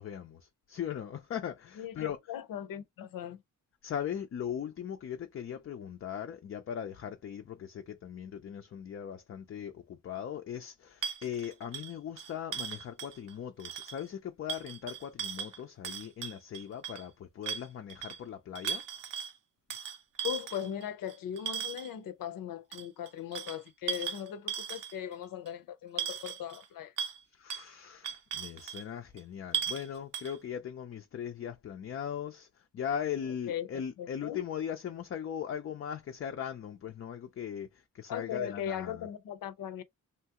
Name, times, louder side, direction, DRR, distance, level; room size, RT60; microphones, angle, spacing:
voice 1, 0.0-2.2 3.8-18.8 27.3-32.5 32.7-37.7 37.9-39.1, left 8 dB, 40° left, 0.4 m, -39 dB
voice 2, 1.8-3.4 20.2-26.9 33.5-33.7 34.0-34.4 38.1-39.8, left 10 dB, 80° left, 0.6 m, -38 dB
sound 1, 11.0-13.3 13.6-14.0 14.5-17.0 17.4-18.2 18.6-19.3 19.7-21.9 22.7-25.1 25.5-25.6 26.0-26.7 27.0-27.2 27.5-27.7 28.0-28.8 29.2-29.3 29.5-29.9 30.1-30.4, right 8 dB, 75° right, 0.7 m, -37 dB
2.8 x 2.3 x 2.8 m
cardioid pair, 105°, 33 cm